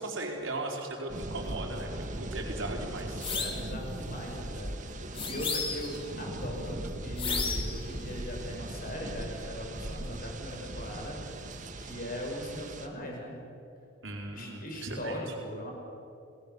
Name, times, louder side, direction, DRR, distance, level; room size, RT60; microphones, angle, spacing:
voice 1, 0.0-3.2 14.0-15.3, right 2 dB, 75° right, 0 dB, 4.1 m, -37 dB
sound 1, 1.1-12.9, right 1 dB, 40° right, 1.5 m, -39 dB
voice 2, 2.9-4.7 5.1-11.5 11.8-13.4 14.3-15.7, equal, 45° left, 1 dB, 5.5 m, -40 dB
sound 2, 3.2-3.7 5.2-6.0 7.2-7.8, left 4 dB, 25° left, 2.4 m, -32 dB
28.0 x 19.5 x 6.9 m, 2.7 s
head